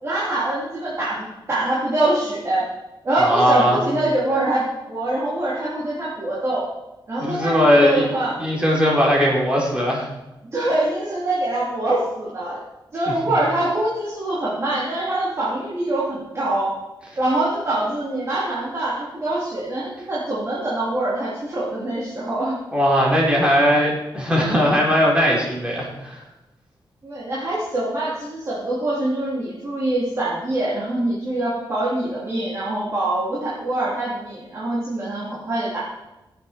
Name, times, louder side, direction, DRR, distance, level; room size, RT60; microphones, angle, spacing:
voice 1, 0.0-2.7 3.0-6.7 7.1-8.4 10.5-12.6 12.9-16.8 17.2-22.6 27.0-35.8, right 1 dB, 35° right, -8 dB, 3.3 m, -24 dB
voice 2, 3.2-3.8 7.2-8.1 8.4-10.1 22.7-26.2, equal, 15° right, -3 dB, 3.7 m, -18 dB
17.0 x 8.4 x 4.4 m, 0.97 s
wide cardioid pair, 170°, 9 cm